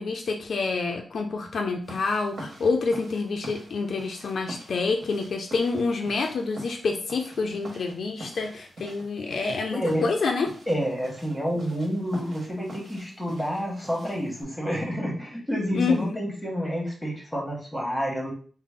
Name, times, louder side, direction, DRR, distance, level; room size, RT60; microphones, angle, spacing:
voice 1, 0.0-10.5 15.7-16.2, left 4 dB, 70° left, 3 dB, 0.5 m, -27 dB
sound 1, 1.8-14.4, right 1 dB, 60° right, 1.3 m, -46 dB
voice 2, 9.7-10.0 10.7-18.3, equal, 5° left, -1 dB, 1.2 m, -29 dB
3.8 x 2.1 x 3.5 m, 0.43 s
wide cardioid pair, 100°, 0 cm